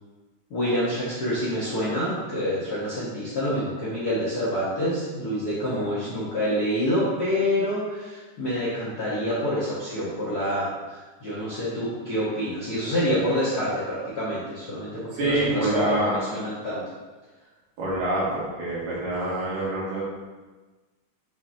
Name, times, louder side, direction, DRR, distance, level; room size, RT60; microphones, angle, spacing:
voice 1, 0.5-16.8, equal, 60° left, -9 dB, 0.9 m, -27 dB
voice 2, 15.1-16.2 17.8-20.0, right 1 dB, 90° right, -7 dB, 3.6 m, -26 dB
6.7 x 5.9 x 2.7 m, 1.3 s
omnidirectional pair, 3.7 m